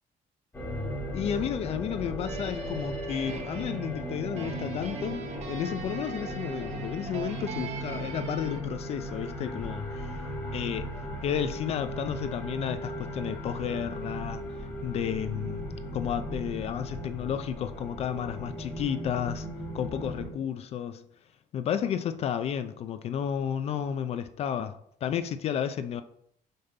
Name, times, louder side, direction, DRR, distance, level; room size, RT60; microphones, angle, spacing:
sound 1, 0.5-20.3, equal, 15° left, 1.3 m, -37 dB
voice 1, 1.1-10.2 10.5-14.4 14.8-19.5 19.7-21.0 21.5-26.0, left 9 dB, 45° left, 0.4 m, -32 dB
sound 2, 2.2-8.6, right 5 dB, 45° right, 0.8 m, -40 dB
5.6 x 5.3 x 3.8 m
cardioid pair, 175°, 15 cm